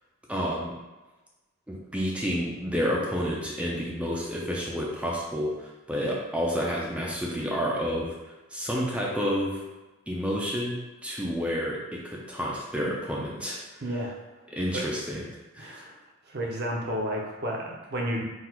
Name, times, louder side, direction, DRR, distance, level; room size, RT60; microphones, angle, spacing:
voice 1, 0.3-0.8 1.7-9.6 10.1-13.6 14.5-15.3 15.5-15.7, equal, 5° right, -4 dB, 0.5 m, -30 dB
voice 2, 13.8-14.1 14.7-14.9 15.6-16.0 16.3-18.2, equal, 55° right, -1 dB, 0.7 m, -31 dB
3.9 x 2.4 x 4.4 m, 1.2 s
head